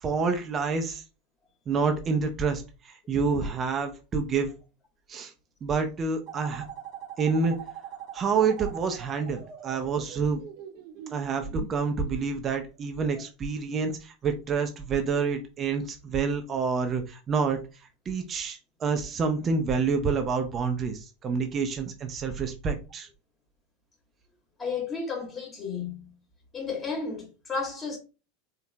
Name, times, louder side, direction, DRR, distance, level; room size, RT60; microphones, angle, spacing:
voice 1, 0.0-1.0 1.7-4.5 5.1-5.3 5.6-6.6 7.2-7.5 8.1-10.4 11.1-17.6 18.1-23.1, right 5 dB, 30° right, 0.7 m, -28 dB
sound 1, 6.3-11.7, right 8 dB, 50° right, 1.0 m, -42 dB
voice 2, 24.6-26.2 26.5-28.0, left 5 dB, 25° left, 2.0 m, -33 dB
4.4 x 3.7 x 2.2 m
hypercardioid pair, 85°, 0 cm